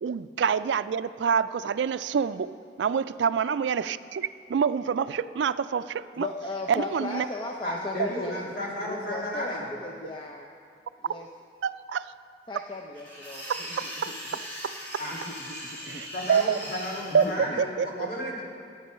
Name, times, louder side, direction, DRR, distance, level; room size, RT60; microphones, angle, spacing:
voice 1, 0.0-2.5 2.8-6.3 6.7-7.3 11.6-12.1 13.5-14.7 15.9-16.4 17.1-17.2 17.6-17.9, right 7 dB, 85° right, 14 dB, 0.4 m, -27 dB
voice 2, 6.1-10.5 11.0-11.3 12.5-13.9 15.1-16.1 17.1-17.6, left 2 dB, 25° left, 0 dB, 0.6 m, -37 dB
voice 3, 7.6-9.6 15.0-15.1 16.1-18.4, left 1 dB, 50° left, -4 dB, 2.8 m, -33 dB
sound 1, 12.9-17.3, equal, 10° left, 3.6 m, -39 dB
14.0 x 9.5 x 5.6 m, 2.3 s
head